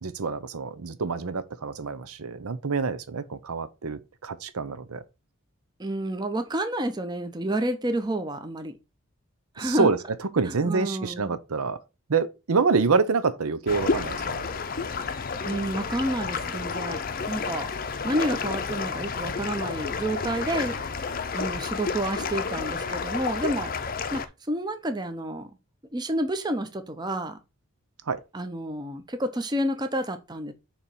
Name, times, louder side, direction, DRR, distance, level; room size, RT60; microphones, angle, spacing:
voice 1, 0.0-5.0 9.6-10.0 10.3-11.8 12.1-14.4 28.1-28.2, right 4 dB, 90° right, 0.7 m, -26 dB
voice 2, 5.8-8.8 9.5-9.9 10.4-11.4 15.4-20.8 21.3-23.7 24.1-25.5 25.9-27.4 28.3-30.5, right 1 dB, 20° right, 0.6 m, -30 dB
sound 1, 13.7-24.3, left 5 dB, 40° left, 0.6 m, -30 dB
6.9 x 3.0 x 5.5 m
head